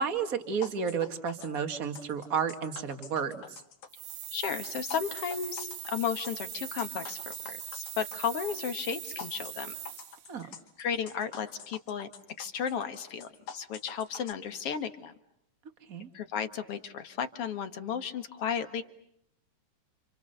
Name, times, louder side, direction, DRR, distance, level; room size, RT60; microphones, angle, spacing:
voice 1, 0.0-3.6 10.3-10.5 15.9-16.1, right 6 dB, 30° right, 8 dB, 2.0 m, -32 dB
sound 1, 0.6-14.3, left 7 dB, 80° left, 3.8 m, -47 dB
sound 2, 3.9-10.3, right 11 dB, 85° right, 2.9 m, -41 dB
voice 2, 4.3-9.7 10.8-12.1 12.4-13.3 13.5-15.1 16.1-18.8, left 7 dB, 55° left, 9 dB, 2.2 m, -34 dB
30.0 x 28.0 x 6.8 m, 0.72 s
omnidirectional pair, 3.7 m